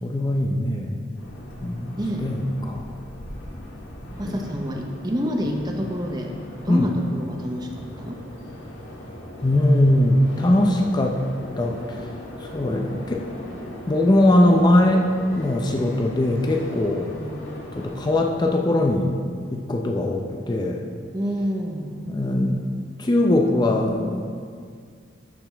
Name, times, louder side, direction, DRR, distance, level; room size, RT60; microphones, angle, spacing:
voice 1, 0.0-1.0 1.6-2.9 4.2-4.7 6.7-6.9 9.4-11.2 11.6-12.0 12.4-13.2 13.9-15.1 15.4-17.1 17.7-19.1 19.5-20.9 22.1-22.6 23.0-24.3, left 1 dB, 20° left, 2 dB, 0.5 m, -21 dB
sound 1, 1.1-18.3, left 1 dB, 80° left, 1.6 m, -38 dB
voice 2, 2.0-2.3 4.2-6.3 6.6-8.2 17.0-17.4 21.1-21.9, equal, 20° right, 2 dB, 0.7 m, -28 dB
12.0 x 6.5 x 3.4 m, 2.1 s
head